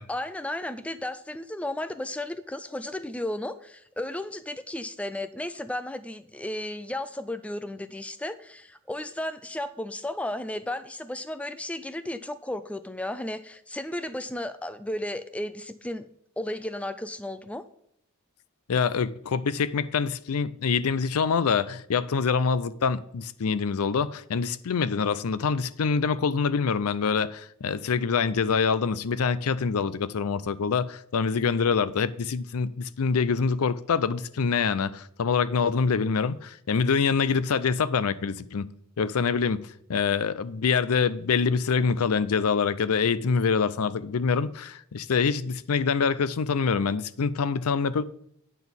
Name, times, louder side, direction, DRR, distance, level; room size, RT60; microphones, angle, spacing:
voice 1, 0.1-16.0 16.4-17.6, left 1 dB, 5° left, 0.3 m, -34 dB
voice 2, 18.7-38.7 39.0-39.6 39.9-48.0, left 5 dB, 80° left, 0.5 m, -25 dB
9.1 x 4.0 x 6.9 m
head